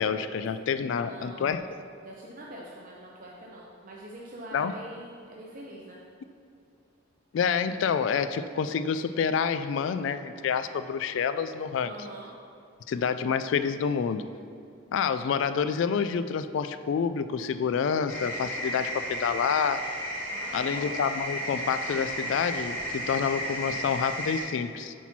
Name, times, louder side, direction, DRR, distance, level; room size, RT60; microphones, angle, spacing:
voice 1, 0.0-1.6 4.5-4.7 7.3-11.9 12.9-14.2 14.9-19.8 20.5-24.9, left 6 dB, 70° left, 11 dB, 0.3 m, -28 dB
voice 2, 0.8-1.5 2.0-6.0 11.8-12.3 20.3-20.9, right 1 dB, 40° right, -4 dB, 0.7 m, -44 dB
sound 1, 18.1-24.4, equal, 10° left, 1.9 m, -34 dB
8.1 x 4.4 x 5.9 m, 2.5 s
head